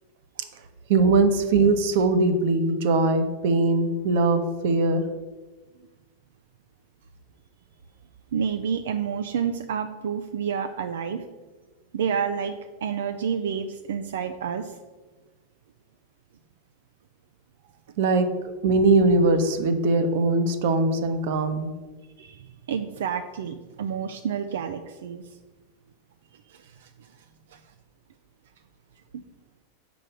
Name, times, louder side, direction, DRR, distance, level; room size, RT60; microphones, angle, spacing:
voice 1, 0.9-5.0 18.0-18.3 18.6-21.7, right 3 dB, 65° right, 9 dB, 0.9 m, -21 dB
voice 2, 8.3-11.2 11.9-12.6 12.8-14.7 22.2-25.2 26.8-26.9 29.1-29.2, right 7 dB, 90° right, 7 dB, 0.5 m, -29 dB
6.1 x 4.8 x 6.7 m, 1.3 s
supercardioid pair, 150°, 0 cm